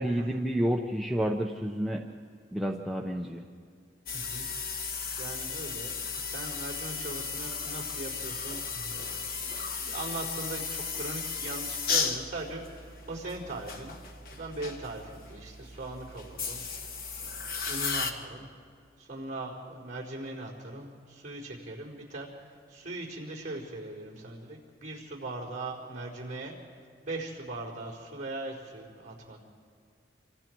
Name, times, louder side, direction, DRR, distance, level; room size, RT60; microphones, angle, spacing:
voice 1, 0.0-2.0 2.5-3.4, equal, ahead, -1 dB, 0.8 m, -29 dB
sound 1, 4.1-18.1, left 5 dB, 50° left, 1.3 m, -35 dB
voice 2, 4.1-4.5 5.2-16.6 17.2-18.5 19.0-26.6 27.0-29.4, right 2 dB, 40° right, -2 dB, 4.2 m, -40 dB
27.5 x 25.0 x 4.6 m, 2.1 s
head